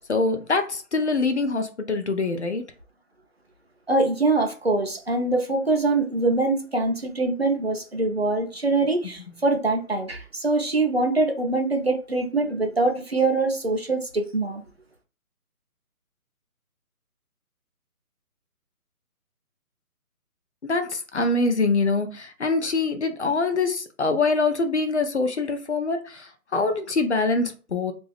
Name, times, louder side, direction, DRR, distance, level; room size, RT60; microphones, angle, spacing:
voice 1, 0.1-2.6 20.6-27.9, left 3 dB, 50° left, 0.5 m, -24 dB
voice 2, 3.9-14.6, right 2 dB, 45° right, 0.5 m, -23 dB
2.5 x 2.4 x 3.3 m
hypercardioid pair, 180°, 45 cm